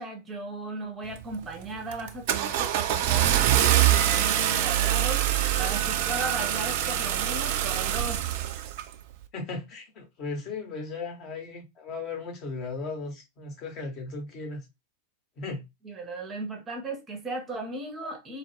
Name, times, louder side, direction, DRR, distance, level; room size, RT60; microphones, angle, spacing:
voice 1, 0.0-8.2 15.8-18.4, right 2 dB, 20° right, 0.6 m, -36 dB
Car / Engine starting, 1.1-1.5 1.9-8.9, right 11 dB, 50° right, 0.3 m, -24 dB
voice 2, 9.3-14.7 15.4-15.6, left 3 dB, 35° left, 0.8 m, -36 dB
2.3 x 2.0 x 3.1 m
figure-of-eight pair, 90°, 0 cm